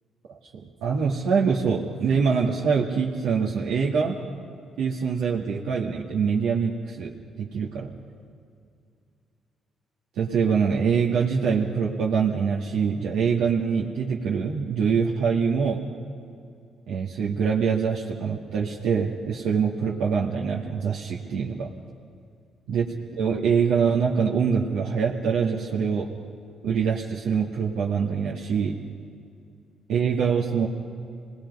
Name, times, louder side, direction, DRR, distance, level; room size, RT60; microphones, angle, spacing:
voice 1, 0.3-4.2 4.8-7.1 7.4-7.9 10.2-15.8 16.9-21.7 22.7-22.9 23.2-26.1 26.6-28.8 29.9-30.7, right 6 dB, 85° right, -4 dB, 2.0 m, -24 dB
26.0 x 20.0 x 5.5 m, 2.4 s
cardioid pair, 90°, 0 cm